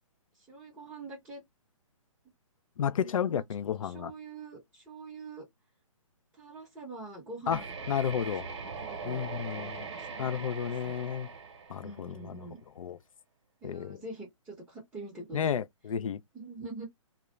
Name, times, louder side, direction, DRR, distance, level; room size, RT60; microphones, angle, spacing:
voice 1, 0.5-1.4 3.0-3.4 3.8-5.4 6.3-7.7 8.0-8.2 8.4-9.2 9.5-10.5 10.8-10.9 11.8-12.6 13.6-15.5 16.3-16.8, right 3 dB, 5° right, 0.7 m, -45 dB
voice 2, 2.8-4.1 7.5-7.6 7.9-8.5 9.0-9.9 10.2-11.3 11.7-12.5 12.8-13.0 13.6-14.0 15.3-16.2, left 8 dB, 75° left, 0.4 m, -32 dB
sound 1, 7.5-12.4, right 5 dB, 55° right, 0.8 m, -41 dB
2.3 x 2.1 x 3.0 m
hypercardioid pair, 165°, 17 cm